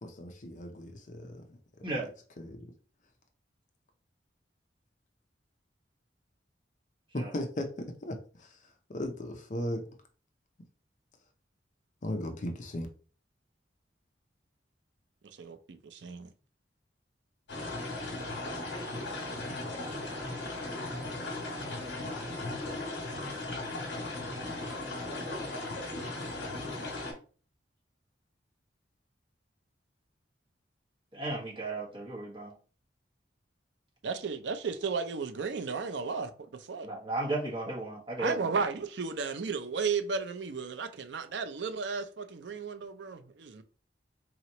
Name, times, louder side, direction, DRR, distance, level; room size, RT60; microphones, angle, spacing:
voice 1, 0.0-1.6 2.4-2.7 7.1-8.6 8.9-9.8 12.0-12.9, left 1 dB, 45° left, 0.6 m, -37 dB
voice 2, 15.4-16.3 34.0-36.9 38.2-43.6, right 5 dB, 70° right, 0.5 m, -34 dB
sound 1, 17.5-27.1, left 2 dB, 70° left, 1.3 m, -37 dB
voice 3, 31.1-32.5 36.8-38.5, right 2 dB, 30° right, 1.5 m, -35 dB
4.1 x 2.9 x 2.9 m
head